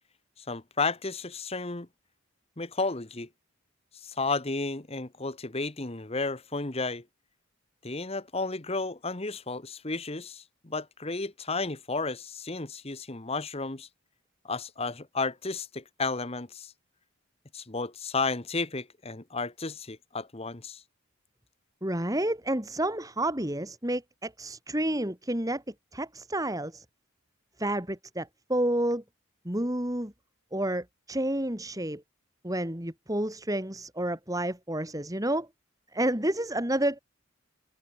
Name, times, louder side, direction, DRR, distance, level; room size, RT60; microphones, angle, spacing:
voice 1, 0.4-1.9 2.6-3.3 4.0-7.0 7.8-13.9 14.4-16.7 17.5-20.8, left 3 dB, 25° left, 1.2 m, -33 dB
voice 2, 21.8-25.6 25.9-26.8 27.6-29.0 29.4-30.1 30.5-32.0 32.4-35.5 35.9-37.0, right 1 dB, 15° right, 2.8 m, -30 dB
head